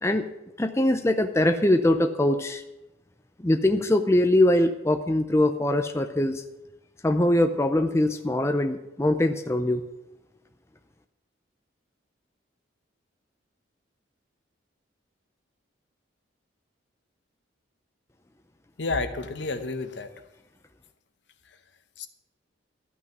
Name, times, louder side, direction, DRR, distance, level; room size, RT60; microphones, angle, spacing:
voice 1, 0.6-2.6 3.4-6.4 7.0-9.8, left 1 dB, 15° left, 7 dB, 0.5 m, -22 dB
voice 2, 18.8-20.1 22.0-22.1, left 3 dB, 60° left, 9 dB, 1.0 m, -30 dB
13.5 x 6.2 x 9.2 m, 0.95 s
head